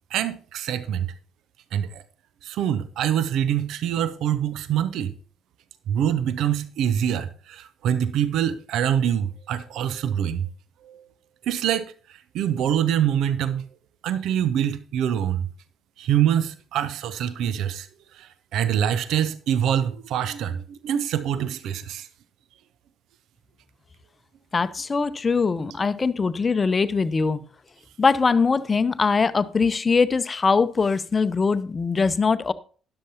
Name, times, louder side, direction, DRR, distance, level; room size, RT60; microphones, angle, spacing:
voice 1, 0.1-1.1 1.7-2.0 2.4-5.1 5.9-10.5 10.8-11.0 11.4-13.6 14.0-15.5 16.0-17.9 18.1-22.1, right 9 dB, 60° right, 0.7 m, -25 dB
voice 2, 24.5-27.4 28.0-32.5, left 4 dB, 30° left, 0.7 m, -22 dB
12.5 x 10.5 x 2.8 m
figure-of-eight pair, 45°, 0 cm